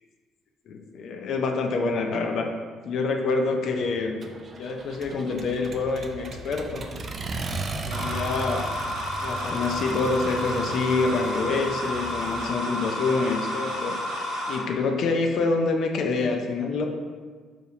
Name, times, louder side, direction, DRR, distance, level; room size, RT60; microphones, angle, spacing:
voice 1, 0.7-2.5 2.8-4.2 4.5-6.9 7.9-8.6 9.2-14.0 14.5-16.9, left 3 dB, 60° left, 3 dB, 0.4 m, -26 dB
Accelerating revving vroom, 4.2-12.5, right 2 dB, 45° right, 0.3 m, -36 dB
sound 1, 7.9-14.6, left 1 dB, 75° right, 1.0 m, -31 dB
4.2 x 2.8 x 2.7 m, 1.5 s
hypercardioid pair, 50°, 0 cm